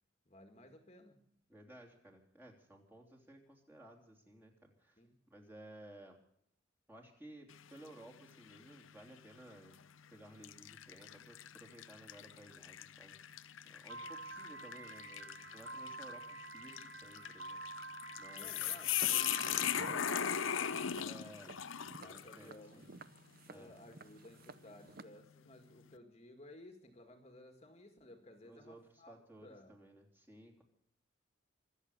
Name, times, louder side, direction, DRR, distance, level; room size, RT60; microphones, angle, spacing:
voice 1, 0.3-1.2 5.0-5.2 18.3-21.4 21.8-23.1 23.5-29.2 29.4-29.8, left 1 dB, 30° left, 6 dB, 1.9 m, -57 dB
voice 2, 1.5-5.0 5.3-6.2 6.9-9.8 10.1-17.6 18.2-18.7 21.0-21.6 22.1-22.9 23.5-23.7 28.4-30.6, right 1 dB, 10° right, 0 dB, 3.1 m, -57 dB
sound 1, 7.5-8.0 8.5-8.6 9.6-9.8 10.4-22.5, left 9 dB, 80° left, 0.8 m, -39 dB
Piano, 13.9-20.9, right 3 dB, 65° right, 2.9 m, -48 dB
Walk footsteps, 19.0-25.0, right 3 dB, 50° right, 0.8 m, -54 dB
25.0 x 8.3 x 6.6 m, 0.68 s
head